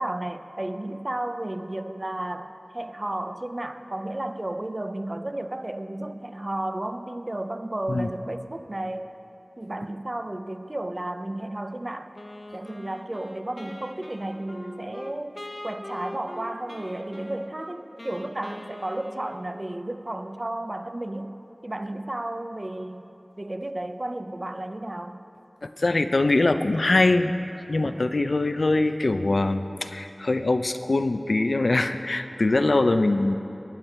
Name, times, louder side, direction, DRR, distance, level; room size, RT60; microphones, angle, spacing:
voice 1, 0.0-9.1 9.6-12.1 12.5-23.1 23.4-25.2, right 1 dB, 40° right, 9 dB, 0.6 m, -33 dB
Wind instrument woodwind instrument, 12.2-19.8, left 1 dB, 40° left, 1.0 m, -42 dB
voice 2, 25.6-27.3 27.7-33.4, left 2 dB, 75° left, 9 dB, 0.5 m, -23 dB
19.0 x 9.1 x 4.4 m, 2.9 s
wide cardioid pair, 50°, 0 cm